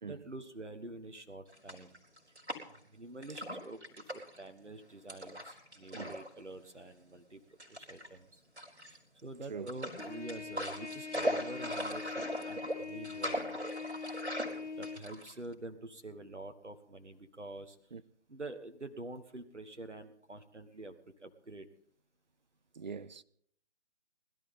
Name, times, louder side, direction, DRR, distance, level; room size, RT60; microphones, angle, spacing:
voice 1, 0.1-1.9 2.7-8.4 8.8-13.6 14.0-17.8 18.3-21.7, right 2 dB, 90° right, 1.4 m, -47 dB
sound 1, 1.5-2.9 3.2-4.4 5.1-6.3 6.6-6.7 7.6-8.1 8.6-9.2 9.7-15.5, equal, 70° right, 4.2 m, -39 dB
Trumpet, 10.0-15.0, left 4 dB, 85° left, 2.3 m, -43 dB
voice 2, 22.8-23.2, right 5 dB, 40° right, 0.5 m, -43 dB
21.0 x 12.5 x 3.6 m
figure-of-eight pair, 145°, 35 cm